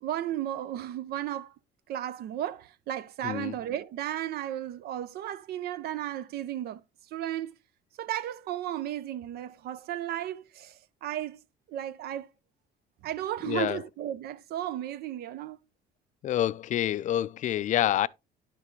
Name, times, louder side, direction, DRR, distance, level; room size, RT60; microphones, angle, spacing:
voice 1, 0.0-1.5 1.9-6.8 7.1-7.5 8.0-11.4 11.7-12.3 13.0-15.6, right 12 dB, 70° right, 0.5 m, -34 dB
voice 2, 3.2-3.5 13.5-13.8 16.2-18.1, left 12 dB, 45° left, 0.4 m, -27 dB
10.0 x 5.9 x 3.1 m
cardioid pair, 110°, 17 cm